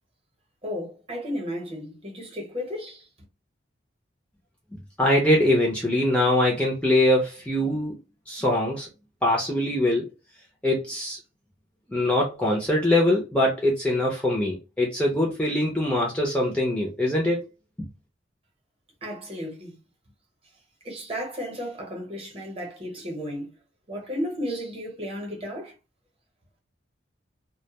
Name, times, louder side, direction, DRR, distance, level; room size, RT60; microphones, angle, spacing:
voice 1, 0.6-3.1 19.0-19.8 20.8-23.5 23.9-25.7, equal, 30° right, 0.8 m, -33 dB
voice 2, 4.7-8.0 8.3-8.9 9.2-10.1 10.6-11.2 11.9-17.5 17.8-17.9, left 1 dB, 5° left, 0.4 m, -23 dB
2.2 x 2.1 x 2.8 m
head